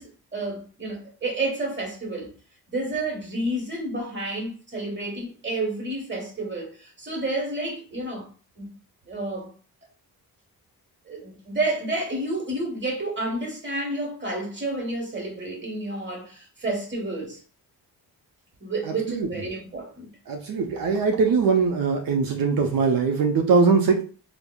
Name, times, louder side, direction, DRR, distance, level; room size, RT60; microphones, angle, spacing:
voice 1, 0.0-2.3 2.7-8.3 8.6-8.7 9.1-9.5 11.0-17.4 18.6-20.1, right 2 dB, 30° right, 1.2 m, -30 dB
voice 2, 20.3-24.0, right 5 dB, 60° right, 0.5 m, -21 dB
3.4 x 2.0 x 2.2 m
cardioid pair, 85°, 39 cm